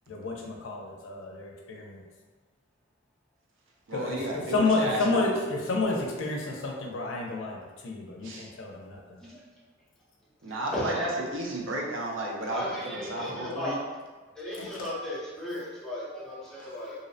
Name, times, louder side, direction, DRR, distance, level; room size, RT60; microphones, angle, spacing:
voice 1, 0.1-2.0 3.9-7.6 7.8-9.0 14.5-14.9, left 3 dB, 80° left, 0 dB, 0.5 m, -30 dB
voice 2, 3.9-5.3 8.2-8.5 10.4-13.8, right 1 dB, 75° right, -2 dB, 0.5 m, -33 dB
voice 3, 10.7-11.1 12.5-13.8 14.4-16.9, left 1 dB, 5° left, -8 dB, 0.6 m, -35 dB
2.6 x 2.0 x 2.6 m, 1.4 s
head